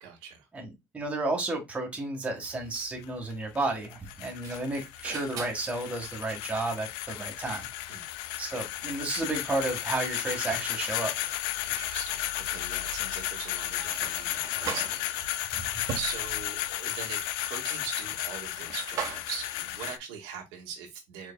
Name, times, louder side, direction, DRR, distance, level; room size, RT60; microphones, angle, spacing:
voice 1, 0.0-0.5 7.9-8.0 11.6-21.3, right 6 dB, 90° right, 1.7 m, -41 dB
voice 2, 0.5-8.1 8.4-11.1, right 2 dB, 15° right, 1.6 m, -32 dB
sound 1, 2.4-20.0, left 15 dB, 90° left, 0.4 m, -34 dB
sound 2, 4.1-19.9, right 6 dB, 50° right, 1.3 m, -44 dB
4.6 x 4.5 x 2.2 m
cardioid pair, 135°, 8 cm